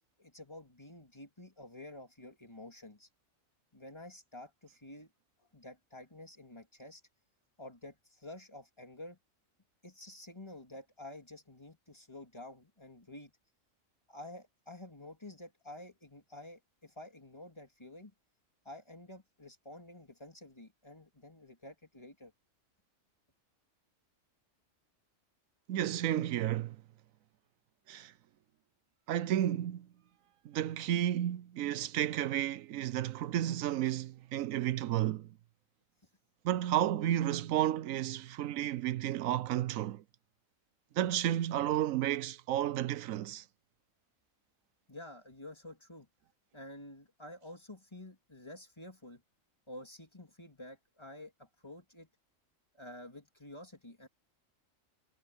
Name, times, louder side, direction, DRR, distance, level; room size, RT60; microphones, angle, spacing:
voice 1, 0.2-3.1 3.7-5.1 5.4-7.0 7.6-9.2 9.8-13.3 14.1-18.1 18.6-22.3 44.9-46.1 46.5-49.2 49.7-52.1 52.7-54.1, left 1 dB, 20° left, 3.1 m, -50 dB
voice 2, 25.7-26.8 27.9-28.1 29.1-29.9 30.4-35.3 36.4-40.0 41.0-43.4, right 12 dB, 85° right, 1.0 m, -32 dB
omnidirectional pair, 1.4 m